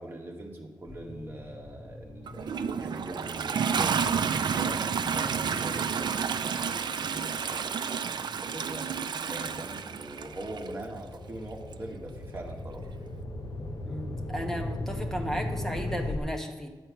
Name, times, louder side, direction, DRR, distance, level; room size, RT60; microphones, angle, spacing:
voice 1, 0.0-4.8 5.1-8.9 9.3-12.8, right 1 dB, 25° right, 0 dB, 1.5 m, -42 dB
sound 1, 0.9-7.6 8.2-16.2, left 2 dB, 50° left, 0.8 m, -40 dB
Toilet flush, 2.3-10.7 11.7-11.8, right 6 dB, 60° right, 0.4 m, -30 dB
voice 2, 13.9-16.7, equal, 5° left, 3 dB, 1.0 m, -34 dB
11.0 x 4.5 x 8.2 m, 1.2 s
wide cardioid pair, 180°, 8 cm